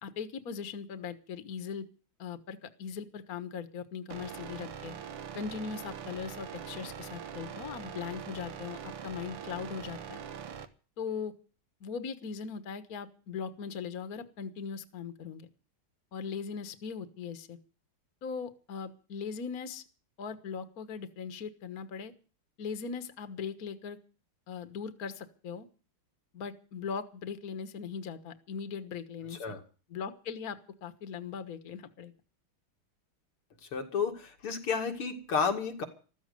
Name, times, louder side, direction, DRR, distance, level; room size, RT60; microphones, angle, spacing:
voice 1, 0.0-1.9 2.2-4.9 5.3-10.2 11.0-11.3 11.8-15.5 16.1-17.6 18.2-19.8 20.2-22.1 22.6-24.0 24.5-25.7 26.3-29.5 29.9-32.1, left 6 dB, 45° left, 10 dB, 1.7 m, -39 dB
sound 1, 4.1-10.7, right 8 dB, 85° right, 2.2 m, -43 dB
voice 2, 33.7-35.8, left 5 dB, 85° left, 4 dB, 3.1 m, -31 dB
15.0 x 14.0 x 6.7 m, 0.37 s
omnidirectional pair, 2.4 m